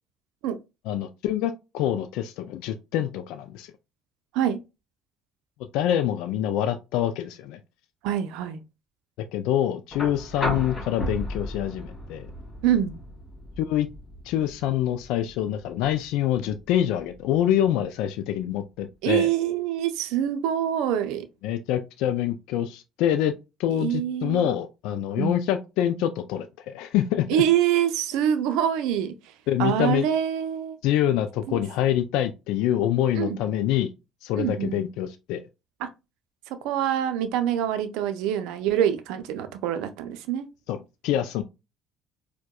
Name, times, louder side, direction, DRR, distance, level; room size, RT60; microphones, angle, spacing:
voice 1, 0.9-3.7 5.7-7.6 9.3-12.3 13.6-13.9 14.3-19.3 21.4-23.3 23.6-27.4 29.5-30.1 30.8-33.9 34.2-35.4 40.7-41.4, left 11 dB, 70° left, 0.3 m, -26 dB
voice 2, 8.0-8.6 12.6-12.9 19.0-21.3 23.7-24.5 25.2-25.4 27.3-29.1 29.6-30.8 31.5-31.6 33.1-33.4 34.4-34.8 35.8-35.9 36.6-40.5, right 10 dB, 70° right, 0.5 m, -25 dB
sound 1, 9.9-17.9 19.4-19.5, left 1 dB, 40° left, 1.9 m, -36 dB
4.5 x 2.1 x 2.2 m
hypercardioid pair, 60°, 0 cm